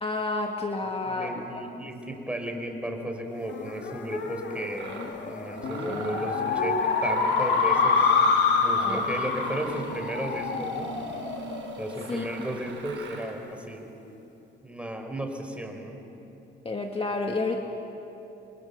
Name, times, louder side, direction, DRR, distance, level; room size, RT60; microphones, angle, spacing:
voice 1, 0.0-1.6 8.8-9.1 12.1-12.3 16.6-17.6, left 3 dB, 30° left, 2 dB, 2.0 m, -30 dB
voice 2, 0.8-8.3 8.6-10.9 11.8-13.9 14.6-16.0, right 1 dB, 5° right, 3 dB, 4.6 m, -34 dB
sound 1, 3.5-12.3, left 5 dB, 65° left, 2.7 m, -27 dB
Mechanisms, 4.1-4.2 4.7-5.1 5.6-13.4, right 5 dB, 70° right, 5.4 m, -40 dB
29.0 x 24.0 x 7.0 m, 3.0 s
cardioid pair, 90°, 20 cm